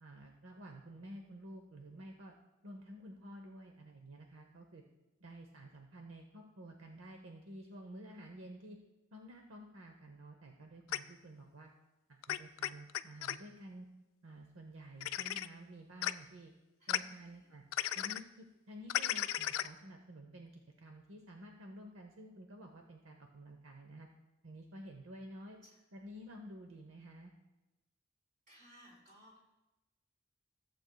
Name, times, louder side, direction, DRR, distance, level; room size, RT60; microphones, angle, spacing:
voice 1, 0.0-2.3 2.6-4.8 5.2-8.8 9.1-11.7 12.1-13.9 14.2-16.5 16.9-17.6 17.9-24.1 24.4-25.6 25.9-27.3, right 1 dB, 75° right, 3 dB, 0.8 m, -51 dB
sound 1, 10.9-11.0 12.2-13.3 15.0-15.5 16.0-16.1 16.9-17.0 17.7-18.2 18.9-19.7, left 12 dB, 80° left, 0.3 m, -34 dB
voice 2, 16.8-17.5 25.6-25.8 28.5-29.4, equal, 40° right, -4 dB, 3.2 m, -61 dB
14.5 x 7.8 x 2.2 m, 1.0 s
head